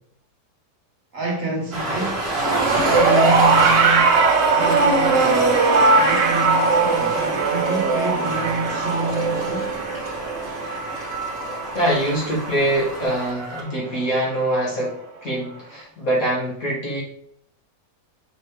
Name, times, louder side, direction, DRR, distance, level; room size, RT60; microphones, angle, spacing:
voice 1, 1.1-5.6 5.9-9.7, right 2 dB, 55° right, 1.3 m, -28 dB
Train, 1.7-13.6, right 1 dB, 40° right, 1.6 m, -30 dB
sound 1, 2.4-12.9 13.9-14.0, right 4 dB, 85° right, 1.4 m, -19 dB
voice 2, 11.7-15.0 15.2-17.0, right 1 dB, 55° left, 2.1 m, -23 dB
5.3 x 3.0 x 3.3 m
omnidirectional pair, 1.8 m